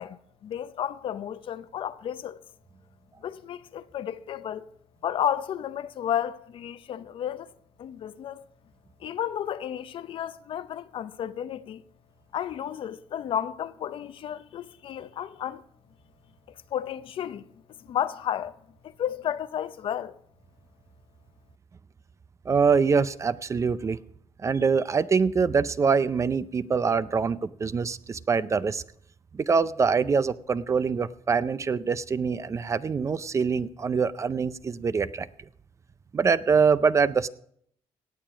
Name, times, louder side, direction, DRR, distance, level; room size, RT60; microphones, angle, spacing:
voice 1, 0.0-2.4 3.2-4.7 5.0-7.5 7.8-8.4 9.0-11.8 12.3-15.6 16.7-17.5 17.8-18.5 18.8-20.2, left 10 dB, 55° left, 0.6 m, -32 dB
voice 2, 22.5-24.0 24.4-28.8 29.3-35.3 36.1-37.3, right 5 dB, 30° right, 0.5 m, -24 dB
18.0 x 7.3 x 4.9 m
cardioid pair, 105°, 10 cm